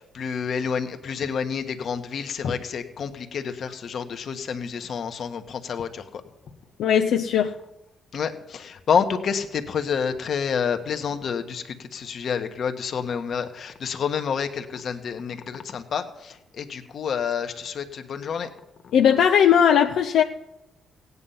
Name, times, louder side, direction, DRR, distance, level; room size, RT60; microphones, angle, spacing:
voice 1, 0.1-6.2 8.1-11.6 11.9-18.5, left 6 dB, 60° left, 1.4 m, -28 dB
voice 2, 6.8-7.5 18.9-20.2, left 8 dB, 75° left, 0.7 m, -18 dB
16.5 x 9.7 x 5.7 m
cardioid pair, 90°, 0 cm